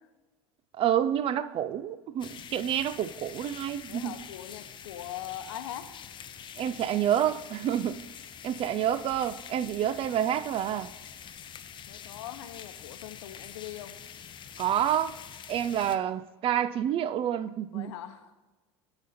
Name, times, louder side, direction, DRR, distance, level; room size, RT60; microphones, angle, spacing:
voice 1, 0.7-4.2 6.6-8.0 8.4-10.9 14.6-15.2 15.5-17.9, right 10 dB, 40° right, 0.4 m, -28 dB
sound 1, 2.2-16.0, left 8 dB, 30° left, 0.6 m, -46 dB
voice 2, 3.9-5.9 11.9-13.9 17.7-18.3, left 12 dB, 75° left, 0.8 m, -41 dB
12.0 x 4.0 x 5.6 m
hypercardioid pair, 90°, 15 cm